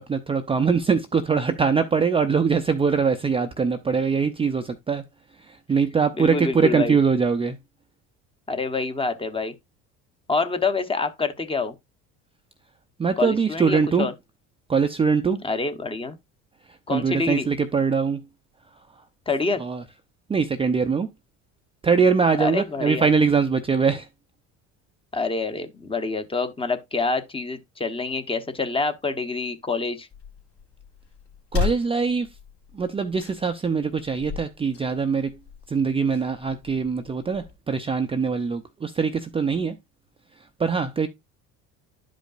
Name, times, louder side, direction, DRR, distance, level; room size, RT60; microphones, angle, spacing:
voice 1, 0.0-5.0 5.5-7.6 13.0-14.1 14.7-15.4 16.9-18.2 19.6-19.8 20.3-21.1 21.8-24.1 31.5-32.3 32.7-35.4 35.7-39.7 40.6-41.1, right 5 dB, 15° right, 0.5 m, -22 dB
voice 2, 6.2-7.0 8.5-9.5 10.3-11.7 13.2-14.1 15.4-16.2 16.9-17.5 19.3-19.6 22.4-23.1 25.1-30.1, left 3 dB, 15° left, 0.9 m, -26 dB
sound 1, 30.1-37.6, left 7 dB, 45° left, 2.5 m, -35 dB
11.0 x 5.2 x 2.4 m
supercardioid pair, 110°, 33 cm